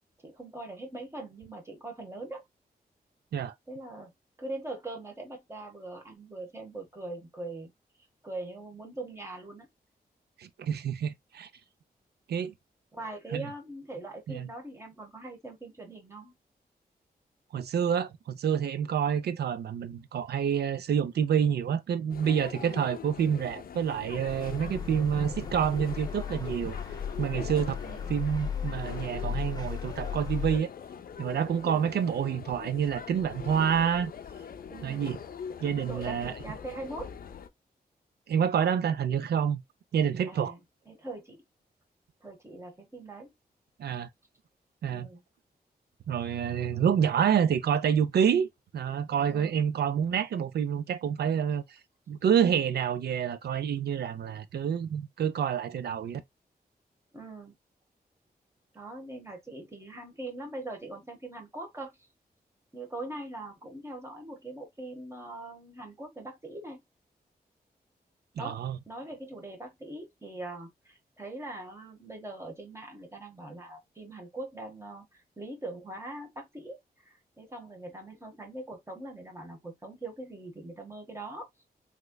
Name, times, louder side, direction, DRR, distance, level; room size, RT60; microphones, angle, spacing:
voice 1, 0.2-2.4 3.7-4.1 4.4-7.7 8.2-9.7 12.9-16.3 22.6-22.9 27.8-28.1 31.6-31.9 34.7-35.1 35.8-37.1 40.3-40.6 40.9-41.4 42.2-43.3 44.9-45.2 49.3-49.6 57.1-57.5 58.7-61.9 62.7-66.8 68.4-81.4, right 2 dB, 15° right, 1.2 m, -42 dB
voice 2, 10.4-11.5 12.3-12.5 13.3-13.5 14.3-14.5 17.5-26.8 27.2-27.8 28.1-30.7 31.2-34.1 34.8-35.2 35.6-36.3 38.3-39.6 39.9-40.5 43.8-44.1 44.8-45.1 46.1-51.6 52.1-56.2 68.4-68.8, right 8 dB, 90° right, 0.5 m, -28 dB
sound 1, 22.1-37.5, left 7 dB, 65° left, 0.5 m, -43 dB
sound 2, 24.3-30.6, left 7 dB, 25° left, 0.7 m, -36 dB
3.7 x 3.1 x 2.2 m
wide cardioid pair, 150°, 16 cm